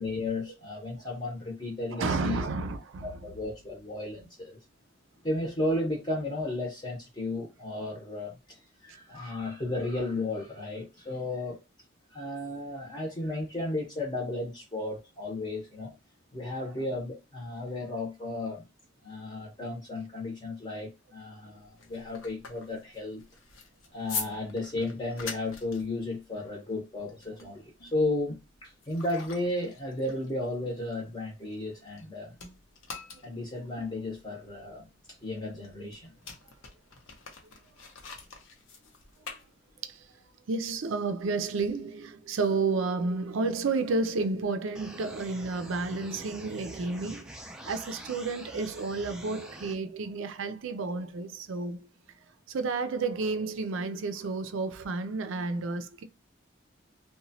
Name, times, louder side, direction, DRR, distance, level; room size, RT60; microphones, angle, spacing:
voice 1, 0.0-2.4 3.0-4.6 5.2-11.6 12.1-15.9 16.3-18.7 19.0-23.2 23.9-32.3 33.2-34.9 35.2-36.1, left 2 dB, 20° left, 0.7 m, -34 dB
voice 2, 1.9-3.1 35.3-35.5 39.8-40.1 40.5-51.9 52.5-56.0, right 3 dB, 80° right, 0.4 m, -31 dB
sound 1, 21.6-32.1 32.3-40.0, left 5 dB, 85° left, 0.7 m, -44 dB
sound 2, 44.7-49.7, right 1 dB, 5° right, 0.3 m, -45 dB
2.9 x 2.2 x 2.7 m
head